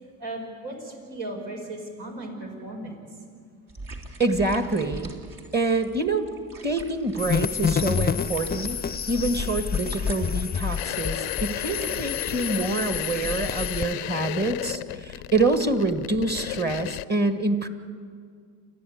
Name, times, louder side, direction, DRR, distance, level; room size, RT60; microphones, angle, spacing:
voice 1, 0.2-3.0, right 1 dB, 75° right, 1 dB, 5.8 m, -36 dB
sound 1, 3.7-12.1, right 2 dB, 55° right, 3.2 m, -44 dB
voice 2, 4.2-5.1 5.5-6.3 6.6-8.8 9.1-17.7, right 2 dB, 25° right, 8 dB, 1.9 m, -26 dB
sound 2, 7.2-13.9, left 7 dB, 25° left, 0.6 m, -28 dB
sound 3, 10.8-17.0, left 19 dB, 85° left, 0.6 m, -34 dB
28.5 x 11.0 x 9.6 m, 2.1 s
supercardioid pair, 65°, 41 cm